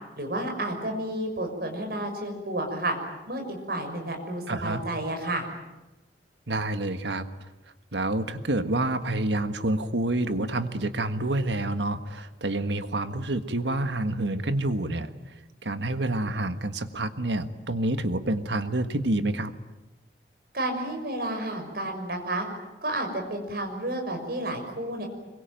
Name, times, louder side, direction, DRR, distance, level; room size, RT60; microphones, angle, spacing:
voice 1, 0.2-3.0 3.3-5.5 20.5-22.5 22.8-25.1, right 1 dB, 55° right, 3 dB, 6.1 m, -31 dB
voice 2, 4.5-4.8 6.5-7.3 7.9-15.1 15.6-19.5, right 1 dB, 75° right, 10 dB, 1.6 m, -28 dB
25.5 x 23.0 x 9.2 m, 1.1 s
head